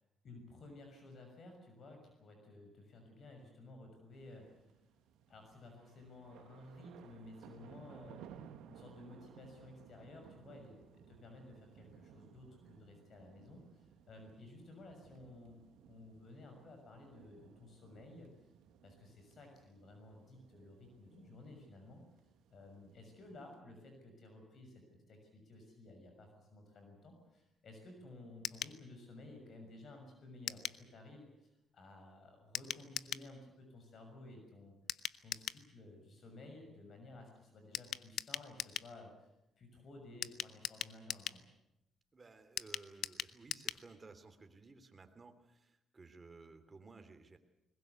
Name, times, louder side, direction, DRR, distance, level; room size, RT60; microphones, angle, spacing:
voice 1, 0.2-4.7 5.3-8.2 8.7-18.3 18.8-22.0 22.5-34.7 35.2-39.3 39.6-41.5, left 2 dB, 55° left, 4 dB, 6.4 m, -55 dB
sound 1, 4.1-23.6, right 9 dB, 90° right, 1.4 m, -60 dB
sound 2, 28.4-28.8 30.5-30.8 32.5-33.3 34.9-35.6 37.7-38.9 40.2-41.4 42.6-43.8 44.1-44.2 44.5-44.6, left 10 dB, 75° left, 0.8 m, -41 dB
voice 2, 42.1-47.4, right 3 dB, 30° right, 7 dB, 3.0 m, -57 dB
22.0 x 20.0 x 8.2 m, 0.87 s
cardioid pair, 90°, 0 cm